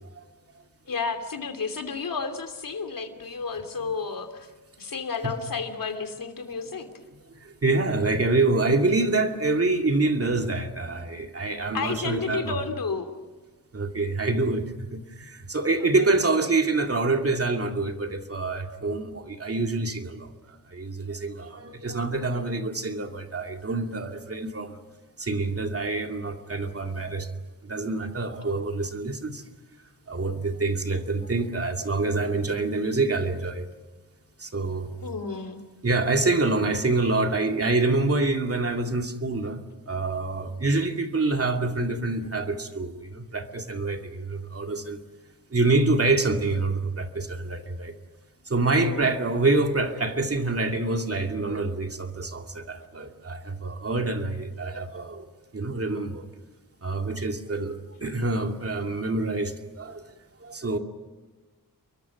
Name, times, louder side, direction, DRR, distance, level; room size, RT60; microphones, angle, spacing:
voice 1, 0.9-4.5 4.8-6.9 11.7-13.1 15.8-15.9 35.0-35.6 48.7-49.1, left 5 dB, 70° left, 7 dB, 2.9 m, -31 dB
voice 2, 7.4-12.6 13.7-20.3 20.7-24.8 25.2-27.3 27.6-29.4 30.1-33.7 34.4-34.9 35.8-39.6 39.9-45.0 45.5-47.9 48.5-55.2 55.5-56.2 56.8-60.0 60.4-60.8, right 3 dB, 40° right, 4 dB, 2.4 m, -26 dB
29.0 x 23.5 x 6.0 m, 1.3 s
wide cardioid pair, 105°, 35 cm